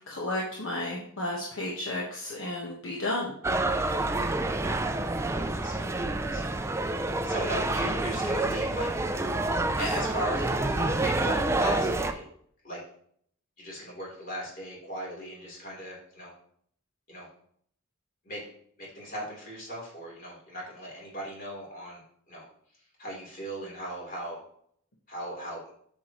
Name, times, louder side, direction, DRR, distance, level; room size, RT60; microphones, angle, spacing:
voice 1, 0.1-3.3, left 1 dB, 60° left, -4 dB, 1.3 m, -32 dB
sound 1, 3.4-12.1, right 2 dB, 15° right, 0.4 m, -28 dB
voice 2, 5.6-5.9 6.3-6.6 7.2-9.1 9.8-12.3 12.6-12.8 13.6-16.3 17.1-17.3 18.2-18.4 18.8-22.0 22.3-22.5 23.0-24.4 25.1-25.6, equal, 40° left, -5 dB, 3.7 m, -38 dB
8.3 x 7.1 x 3.1 m, 0.65 s
head